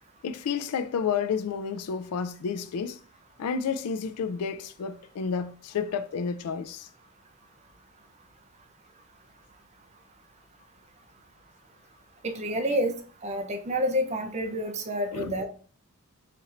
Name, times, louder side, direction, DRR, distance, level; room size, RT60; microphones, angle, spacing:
voice 1, 0.2-3.0 3.4-6.9 15.1-15.3, left 6 dB, 80° left, 0.4 m, -30 dB
voice 2, 12.2-12.9 13.2-15.5, equal, 30° right, 0.6 m, -28 dB
4.2 x 2.5 x 4.2 m
head